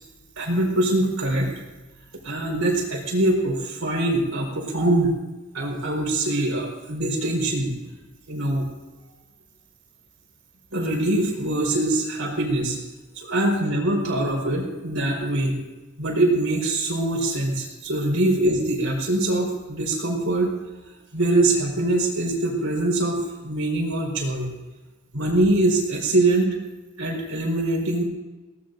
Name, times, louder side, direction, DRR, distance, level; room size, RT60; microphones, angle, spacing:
voice 1, 0.4-1.5 2.2-5.1 5.5-7.7 8.3-8.7 10.7-12.8 13.1-15.5 16.0-20.5 21.1-24.5 25.1-26.5 27.0-28.0, right 1 dB, 85° right, 0 dB, 4.6 m, -23 dB
22.5 x 18.0 x 2.6 m, 1.2 s
head